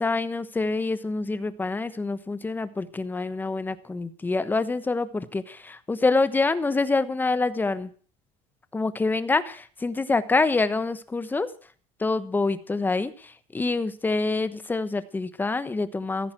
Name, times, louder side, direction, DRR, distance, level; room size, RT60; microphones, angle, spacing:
voice 1, 0.0-7.9 8.7-11.5 12.0-16.3, left 3 dB, 10° left, 13 dB, 1.2 m, -26 dB
15.5 x 14.0 x 6.0 m, 0.43 s
cardioid pair, 140°, 15 cm